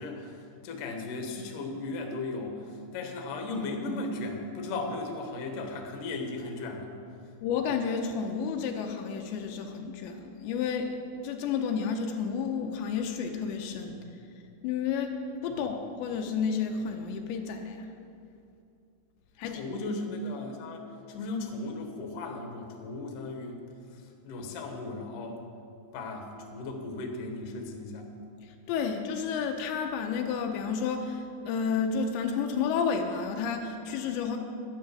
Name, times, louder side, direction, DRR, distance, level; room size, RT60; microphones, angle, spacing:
voice 1, 0.0-6.9 13.9-14.1 15.5-15.7 19.5-23.6 23.9-25.4 25.9-28.1, left 2 dB, 60° left, 2 dB, 2.4 m, -36 dB
voice 2, 7.4-14.0 14.6-17.9 19.4-19.6 28.4-34.4, left 6 dB, 85° left, 3 dB, 3.0 m, -31 dB
11.5 x 10.5 x 6.8 m, 2.6 s
omnidirectional pair, 5.2 m